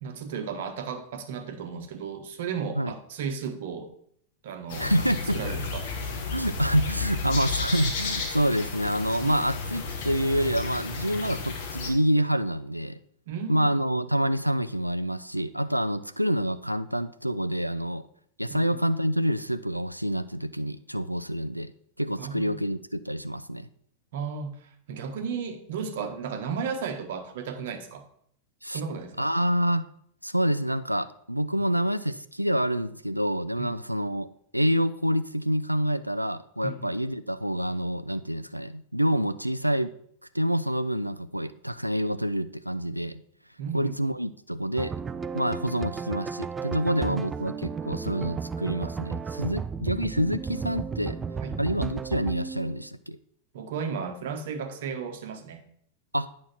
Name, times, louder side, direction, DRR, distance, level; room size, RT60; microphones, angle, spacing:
voice 1, 0.0-3.9 4.4-4.9 5.3-5.9 9.2-9.4 13.3-13.7 18.5-18.8 22.2-22.5 24.1-28.1 28.7-29.2 33.6-33.8 36.6-36.9 43.6-44.0 46.9-47.2 51.4-51.6 53.5-55.6, right 6 dB, 55° right, 7 dB, 1.2 m, -34 dB
sound 1, 4.7-11.9, left 4 dB, 55° left, 1.6 m, -32 dB
voice 2, 4.8-5.4 6.3-13.0 13.5-18.1 18.4-21.7 22.0-23.7 28.6-28.8 29.2-29.9 30.2-34.3 34.5-39.9 40.3-43.2 43.7-44.9 45.3-51.2 51.6-53.2 56.1-56.3, equal, 90° right, 14 dB, 0.4 m, -27 dB
Mars army, 44.8-52.8, right 5 dB, 15° right, 0.4 m, -34 dB
8.8 x 6.3 x 4.4 m, 0.66 s
figure-of-eight pair, 90°, 0 cm